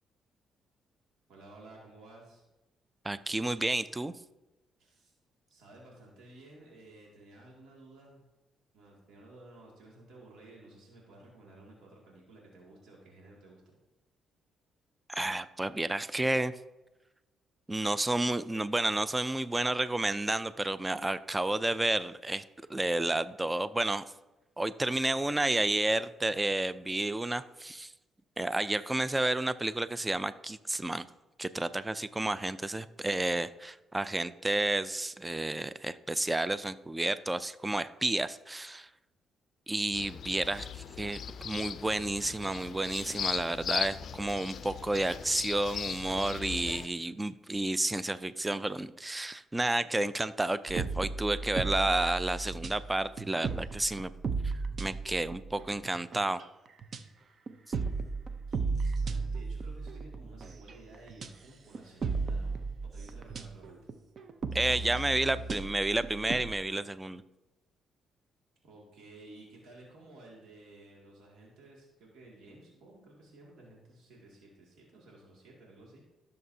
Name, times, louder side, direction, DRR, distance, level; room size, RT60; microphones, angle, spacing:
voice 1, 1.3-2.4 4.8-5.1 5.5-8.2 8.7-13.7 58.5-62.6 62.9-63.8 68.6-76.0, right 2 dB, 80° right, -3 dB, 2.3 m, -54 dB
voice 2, 3.0-4.1 15.1-16.5 17.7-22.4 22.7-24.0 24.6-27.9 28.4-31.0 31.4-38.9 39.7-54.1 54.8-56.4 64.5-67.2, right 2 dB, 15° right, 14 dB, 0.4 m, -31 dB
sound 1, 39.9-46.9, left 8 dB, 60° left, 0.4 m, -38 dB
sound 2, 50.7-56.4 56.8-57.0 57.5-61.3 61.7-66.6, right 4 dB, 50° right, 0.6 m, -35 dB
14.5 x 6.7 x 2.8 m, 1.0 s
cardioid pair, 90°, 0 cm